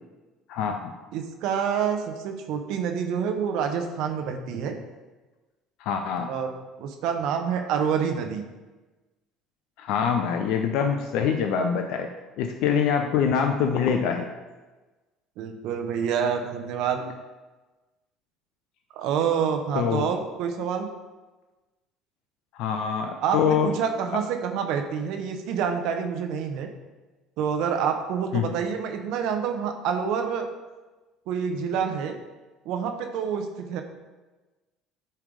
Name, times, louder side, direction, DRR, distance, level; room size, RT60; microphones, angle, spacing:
voice 1, 0.5-0.9 5.8-6.3 9.8-12.1 12.4-14.3 19.7-20.1 22.5-23.7 28.3-28.5, left 7 dB, 70° left, 5 dB, 0.5 m, -24 dB
voice 2, 1.1-4.8 6.3-6.5 6.8-8.4 15.4-17.0 19.0-20.9 23.2-26.7 27.4-30.5 31.3-32.1 32.6-33.8, right 7 dB, 70° right, 5 dB, 0.8 m, -27 dB
8.7 x 3.3 x 5.1 m, 1.2 s
hypercardioid pair, 70°, 0 cm